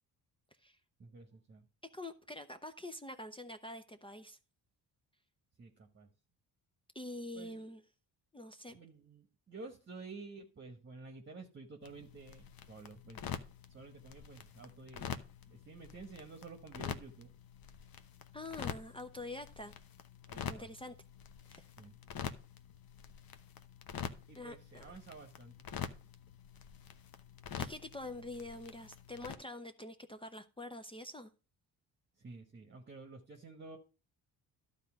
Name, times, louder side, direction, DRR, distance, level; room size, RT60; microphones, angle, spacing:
voice 1, 1.0-1.6 5.6-6.1 7.3-7.7 8.7-13.4 13.7-15.1 15.4-17.3 20.3-20.7 21.8-22.0 24.3-25.7 32.2-33.8, right 3 dB, 25° right, 1.2 m, -51 dB
voice 2, 1.9-4.4 6.9-7.8 8.3-8.8 18.3-19.7 20.5-20.9 21.5-21.6 24.4-24.9 27.6-31.3, left 1 dB, 15° left, 0.6 m, -46 dB
sound 1, 11.8-29.3, left 8 dB, 55° left, 0.9 m, -46 dB
11.5 x 4.1 x 6.0 m
cardioid pair, 90°, 42 cm